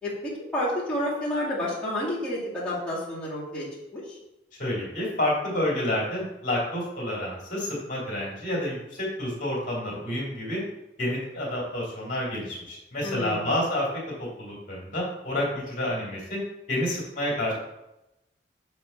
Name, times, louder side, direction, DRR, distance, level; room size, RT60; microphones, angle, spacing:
voice 1, 0.0-3.7 3.9-4.2 13.0-13.5, left 1 dB, 5° left, -11 dB, 2.1 m, -30 dB
voice 2, 4.6-10.6 11.0-13.9 14.2-16.4 16.7-17.5, left 1 dB, 45° left, -5 dB, 2.4 m, -29 dB
7.1 x 3.2 x 5.5 m, 0.91 s
head